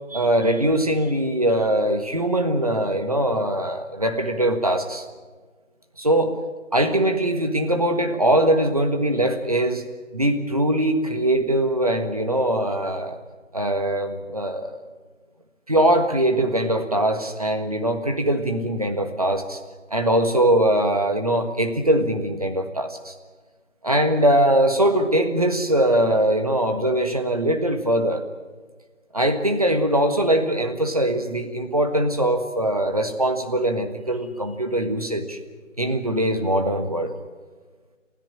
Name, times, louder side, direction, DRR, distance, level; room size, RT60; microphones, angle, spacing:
voice 1, 0.1-5.0 6.0-6.4 6.7-9.8 10.1-13.2 13.5-14.8 15.7-19.6 19.9-23.1 23.8-28.2 29.1-35.4 35.8-37.1, right 1 dB, 30° right, 6 dB, 1.5 m, -22 dB
30.0 x 13.5 x 8.8 m, 1.4 s
figure-of-eight pair, 170°, 38 cm